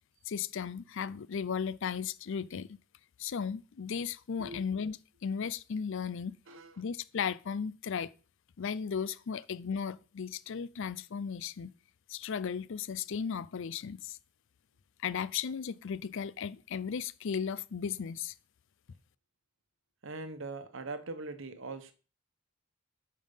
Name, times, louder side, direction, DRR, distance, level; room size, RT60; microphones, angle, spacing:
voice 1, 0.3-2.7 3.2-6.4 6.8-8.1 8.6-11.7 12.1-14.2 15.0-18.3, left 6 dB, 65° left, 0.5 m, -35 dB
voice 2, 6.5-6.8 20.0-21.9, right 3 dB, 65° right, 1.1 m, -41 dB
8.9 x 5.4 x 5.5 m
head